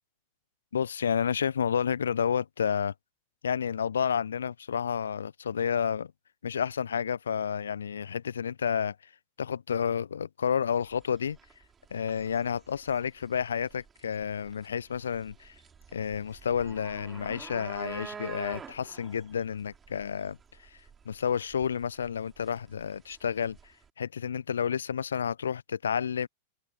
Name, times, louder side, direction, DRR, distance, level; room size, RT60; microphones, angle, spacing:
voice 1, 0.7-2.9 3.4-6.1 6.4-8.9 9.4-11.4 11.9-15.5 15.9-20.4 21.0-23.6 24.0-26.3, left 7 dB, 70° left, 0.9 m, -30 dB
sound 1, 10.7-23.9, right 6 dB, 20° right, 6.1 m, -48 dB
figure-of-eight pair, 90°, 0 cm